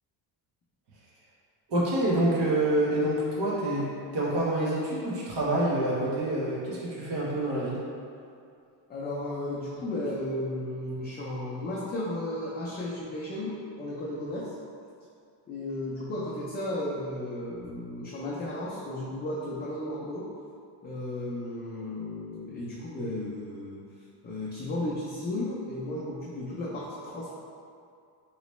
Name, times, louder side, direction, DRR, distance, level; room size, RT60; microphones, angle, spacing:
voice 1, 1.7-7.8, right 1 dB, 80° right, -6 dB, 1.1 m, -27 dB
voice 2, 8.9-14.5 15.5-20.3 20.8-23.8 24.2-27.3, left 1 dB, 25° left, -8 dB, 0.4 m, -34 dB
3.1 x 3.0 x 3.0 m, 2.4 s
cardioid pair, 140°, 42 cm